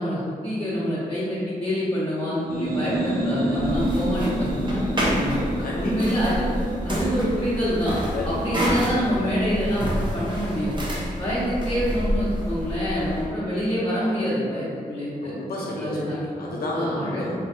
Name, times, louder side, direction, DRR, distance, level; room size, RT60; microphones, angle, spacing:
voice 1, 0.0-5.4 5.8-6.5 6.8-8.0 8.2-10.8 11.2-15.3 15.8-16.2 16.7-17.2, equal, 30° left, -12 dB, 1.1 m, -26 dB
sound 1, 2.4-9.9, right 1 dB, 80° right, 0.5 m, -30 dB
sound 2, 3.5-13.3, equal, 30° right, 0.8 m, -28 dB
voice 2, 5.0-6.1 8.1-8.3 10.9-11.1 12.9-13.1 15.2-17.3, left 1 dB, 85° left, -3 dB, 0.6 m, -31 dB
3.2 x 2.3 x 2.6 m, 2.2 s
cardioid pair, 50°, 15 cm